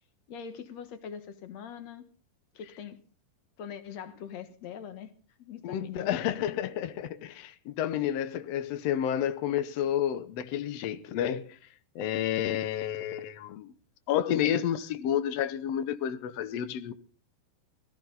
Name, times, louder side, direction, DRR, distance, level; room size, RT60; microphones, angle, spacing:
voice 1, 0.3-2.0 2.5-3.0 3.6-5.1 5.4-6.3, left 8 dB, 55° left, 2.3 m, -42 dB
voice 2, 5.6-11.6 11.9-13.7 14.1-16.9, left 10 dB, 85° left, 1.4 m, -30 dB
18.5 x 15.5 x 4.0 m
omnidirectional pair, 4.2 m